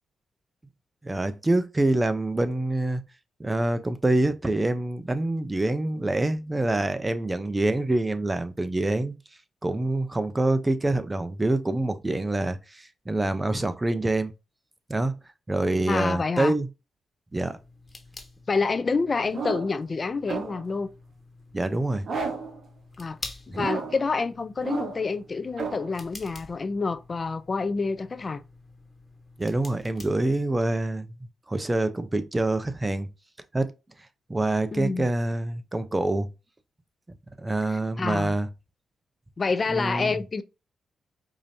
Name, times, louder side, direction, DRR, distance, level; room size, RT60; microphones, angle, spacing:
voice 1, 1.0-3.0 3.4-9.1 9.6-14.3 14.9-15.1 15.5-16.7 17.3-17.6 21.5-22.1 23.5-23.7 29.4-31.1 31.5-33.1 33.5-33.7 34.3-36.3 37.4-38.5 39.7-40.2, right 2 dB, 20° right, 0.6 m, -26 dB
voice 2, 15.9-16.5 18.5-20.9 23.0-23.2 23.5-28.4 34.7-35.1 37.7-38.3 39.4-40.4, left 4 dB, 40° left, 0.4 m, -28 dB
sound 1, 17.3-30.8, left 2 dB, 25° left, 1.2 m, -48 dB
sound 2, 19.3-19.8 20.3-20.8 22.0-22.6 23.5-24.1 24.6-25.1 25.6-25.9, right 5 dB, 60° right, 1.0 m, -33 dB
4.9 x 2.6 x 2.7 m
cardioid pair, 70°, 0 cm